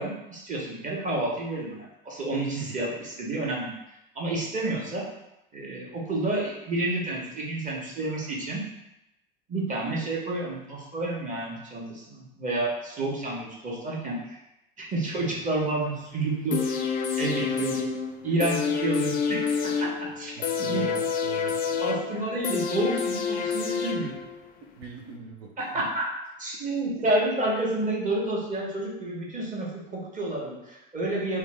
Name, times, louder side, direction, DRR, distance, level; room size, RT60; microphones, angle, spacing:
voice 1, 0.0-3.7 4.1-5.0 5.5-8.6 9.5-14.4 14.8-16.8 17.2-17.7 18.2-19.4 20.2-20.3 20.7-20.8 21.8-24.1 25.6-26.0 26.4-31.4, right 2 dB, 25° right, -3 dB, 0.9 m, -29 dB
voice 2, 2.6-2.9 15.2-15.5 19.8-19.9 20.4-21.6 24.8-25.8, right 4 dB, 85° right, 0 dB, 0.6 m, -42 dB
sound 1, 16.5-24.5 24.8-24.9, left 6 dB, 30° left, 0.3 m, -28 dB
2.7 x 2.1 x 3.3 m, 0.90 s
hypercardioid pair, 85°, 30 cm